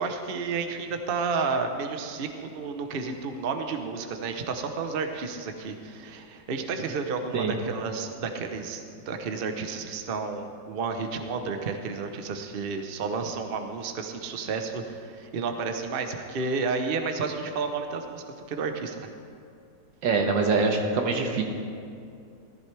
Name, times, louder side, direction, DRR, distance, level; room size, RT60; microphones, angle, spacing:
voice 1, 0.0-19.1, right 4 dB, 45° right, 6 dB, 0.8 m, -31 dB
voice 2, 20.0-21.4, right 4 dB, 90° right, 3 dB, 1.9 m, -24 dB
15.0 x 14.0 x 3.4 m, 2.4 s
omnidirectional pair, 1.9 m